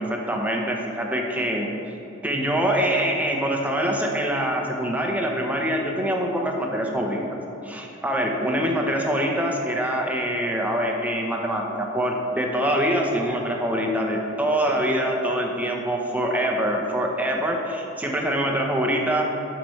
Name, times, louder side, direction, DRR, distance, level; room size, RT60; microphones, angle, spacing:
voice 1, 0.0-1.7 2.2-7.2 7.6-19.3, equal, 10° right, 0 dB, 0.8 m, -24 dB
11.5 x 5.9 x 3.2 m, 2.9 s
head